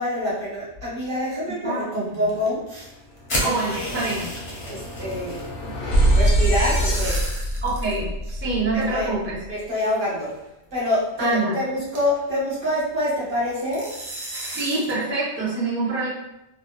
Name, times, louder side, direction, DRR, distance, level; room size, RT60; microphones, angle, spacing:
voice 1, 0.0-2.9 3.4-4.0 4.7-5.4 6.1-7.3 8.7-9.1 9.5-10.3 10.7-13.9, left 1 dB, 50° right, -9 dB, 1.3 m, -26 dB
voice 2, 1.6-2.3 3.4-4.3 7.6-9.4 11.2-11.6 14.5-16.1, right 3 dB, 15° right, -8 dB, 0.5 m, -26 dB
sound 1, 1.7-2.5 2.7-2.9 3.2-3.3 3.6-4.9 5.2-5.4 6.2-8.0 8.3-8.4 9.2-9.3 10.2-10.4 10.9-11.0 11.4-11.5 12.0-12.2 13.7-15.0, right 2 dB, 75° right, 0.9 m, -36 dB
sound 2, 2.8-2.9 3.2-9.4, right 1 dB, 70° left, 0.8 m, -24 dB
sound 3, 3.3-5.5, left 1 dB, 35° left, 0.5 m, -30 dB
2.8 x 2.1 x 2.2 m, 0.90 s
omnidirectional pair, 1.1 m